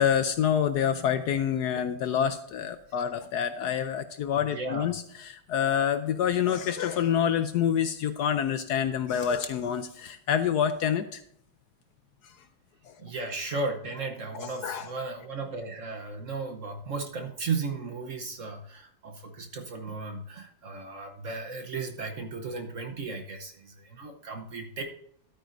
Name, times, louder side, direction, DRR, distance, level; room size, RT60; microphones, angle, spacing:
voice 1, 0.0-11.2 12.2-12.3 12.9-13.0 14.3-14.9, left 8 dB, 75° left, 10 dB, 0.9 m, -27 dB
voice 2, 4.4-4.9 13.0-24.8, right 3 dB, 55° right, 4 dB, 0.9 m, -35 dB
12.5 x 9.1 x 2.6 m, 0.68 s
omnidirectional pair, 2.2 m